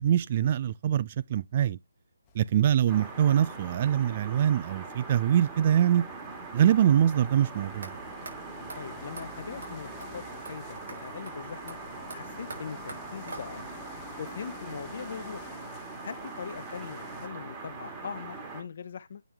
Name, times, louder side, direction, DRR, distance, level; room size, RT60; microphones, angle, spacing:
voice 1, 0.0-1.8 2.3-6.0 6.5-7.9, right 10 dB, 35° right, 0.4 m, -24 dB
sound 1, 2.3-17.3, left 6 dB, 20° left, 1.1 m, -52 dB
sound 2, 2.9-18.6, right 3 dB, 15° right, 1.9 m, -42 dB
sound 3, 7.8-7.9 8.3-8.4 8.7-8.8 9.2-9.3 9.6-9.7 10.0-10.1 10.5-10.6 10.9-11.0 11.3-11.4 11.7-13.8, right 3 dB, 60° right, 5.6 m, -44 dB
voice 2, 8.8-11.8 12.1-13.6 14.2-15.5 16.0-19.2, left 6 dB, 45° left, 0.9 m, -41 dB
9.0 x 4.3 x 3.5 m
figure-of-eight pair, 145°, 0 cm